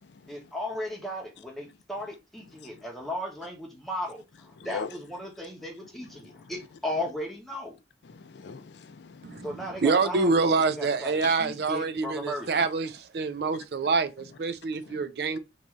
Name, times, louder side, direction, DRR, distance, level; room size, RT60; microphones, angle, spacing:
voice 1, 0.3-7.8 9.4-12.6, left 1 dB, ahead, 0.9 m, -36 dB
voice 2, 4.6-4.9 6.3-6.5 8.1-9.5 14.9-15.0, left 5 dB, 70° left, 0.4 m, -41 dB
voice 3, 9.2-15.4, right 4 dB, 60° right, 0.4 m, -26 dB
3.1 x 2.7 x 3.5 m
head